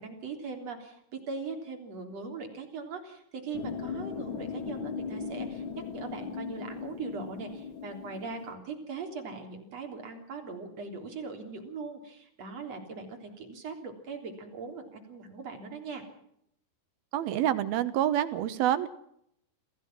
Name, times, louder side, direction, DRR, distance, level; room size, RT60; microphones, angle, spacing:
voice 1, 0.0-5.6 5.9-16.0, right 4 dB, 40° right, 3 dB, 4.4 m, -40 dB
sound 1, 3.5-8.5, left 6 dB, 55° left, 1.4 m, -38 dB
voice 2, 17.1-18.9, right 12 dB, 75° right, 13 dB, 2.9 m, -27 dB
27.0 x 16.5 x 6.0 m, 0.73 s
omnidirectional pair, 4.6 m